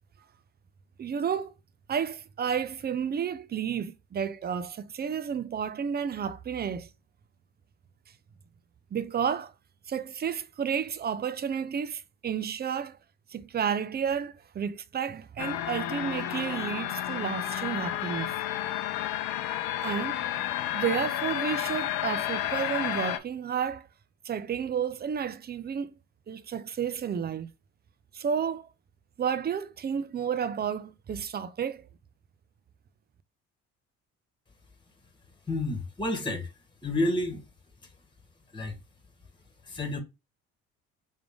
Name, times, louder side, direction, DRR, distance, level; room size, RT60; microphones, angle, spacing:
voice 1, 1.0-1.5 1.9-6.9 8.9-9.5 9.9-13.0 13.3-18.3 19.8-20.2 20.7-23.9 24.2-25.9 26.3-27.5 28.1-28.7 29.2-31.9, right 7 dB, 25° right, 0.5 m, -31 dB
sound 1, 15.4-23.2, left 12 dB, 65° left, 0.8 m, -31 dB
voice 2, 35.5-36.5 36.8-37.4 38.5-38.8 39.6-40.0, left 2 dB, 10° left, 1.6 m, -30 dB
3.6 x 3.2 x 3.6 m
hypercardioid pair, 55°, 39 cm